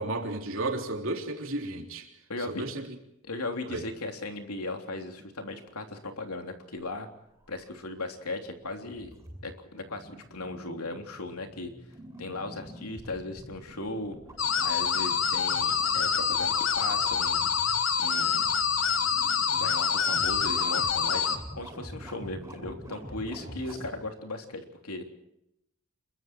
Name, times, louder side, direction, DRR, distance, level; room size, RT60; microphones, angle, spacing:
voice 1, 0.0-2.1 2.6-2.8 3.7-3.8, right 2 dB, 65° right, 3.5 m, -32 dB
voice 2, 2.3-2.6 3.2-7.1 7.5-9.1 9.4-11.7 12.2-14.1 14.6-17.5 18.0-18.5 19.5-25.1, left 2 dB, 90° left, 3.4 m, -37 dB
sound 1, 6.8-23.9, equal, 10° right, 7.6 m, -46 dB
sound 2, 14.4-21.4, left 6 dB, 60° left, 1.9 m, -26 dB
27.5 x 23.0 x 4.6 m
head